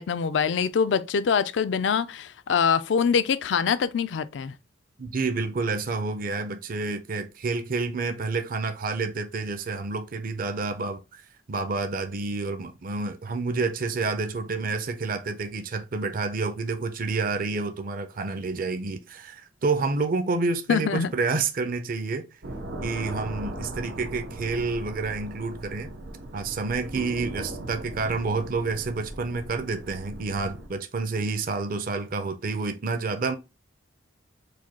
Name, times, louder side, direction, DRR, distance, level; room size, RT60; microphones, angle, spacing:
voice 1, 0.0-4.5 20.7-21.1, left 6 dB, 65° left, 0.4 m, -24 dB
voice 2, 5.0-11.2 11.5-22.3 22.8-25.9 26.3-33.4, right 3 dB, 50° right, 0.5 m, -29 dB
sound 1, 22.4-30.7, right 1 dB, 80° right, 1.0 m, -38 dB
4.9 x 2.2 x 4.2 m
head